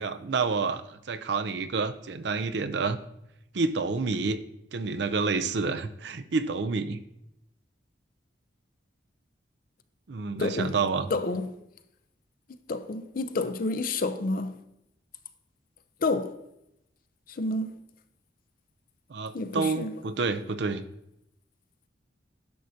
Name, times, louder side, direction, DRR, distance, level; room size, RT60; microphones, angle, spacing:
voice 1, 0.0-3.0 3.5-4.4 4.7-7.0 10.1-11.1 19.1-20.8, right 4 dB, 65° right, 0.5 m, -29 dB
voice 2, 10.4-10.8 11.1-11.5 12.7-14.5 16.0-16.3 17.4-17.7 19.3-19.9, left 3 dB, 50° left, 0.5 m, -29 dB
10.5 x 6.3 x 2.7 m
head